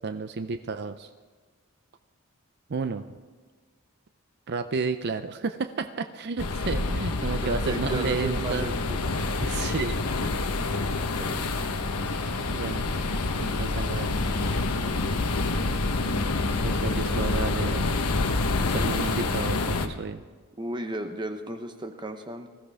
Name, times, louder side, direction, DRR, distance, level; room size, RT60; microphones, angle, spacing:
voice 1, 0.0-1.1 2.7-3.0 4.5-8.7 9.4-10.1 11.6-11.7 12.5-12.8 13.4-14.1 16.6-17.9 18.7-20.2, right 4 dB, 50° right, 9 dB, 0.5 m, -31 dB
sound 1, 6.4-19.9, left 3 dB, 90° left, 1.1 m, -27 dB
voice 2, 7.4-9.0 10.9-11.5 20.6-22.5, right 1 dB, 20° right, 6 dB, 0.8 m, -34 dB
20.5 x 15.5 x 3.5 m, 1.5 s
head